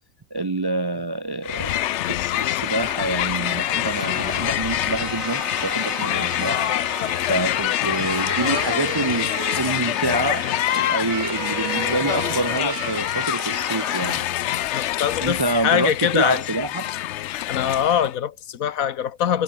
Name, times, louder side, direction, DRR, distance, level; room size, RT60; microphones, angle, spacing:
voice 1, 0.3-1.8 2.1-6.7 7.3-14.3 15.2-16.9, right 2 dB, 35° right, 0.4 m, -27 dB
Crowd, 1.4-18.1, left 13 dB, 65° left, 0.8 m, -25 dB
Boom, 3.3-5.0 5.9-6.1, right 4 dB, 55° right, 2.6 m, -47 dB
sound 1, 3.4-3.5 3.9-14.3 14.7-14.9, right 10 dB, 75° right, 1.3 m, -35 dB
voice 2, 14.7-16.4 17.5-19.4, left 9 dB, 85° left, 1.4 m, -23 dB
omnidirectional pair, 1.4 m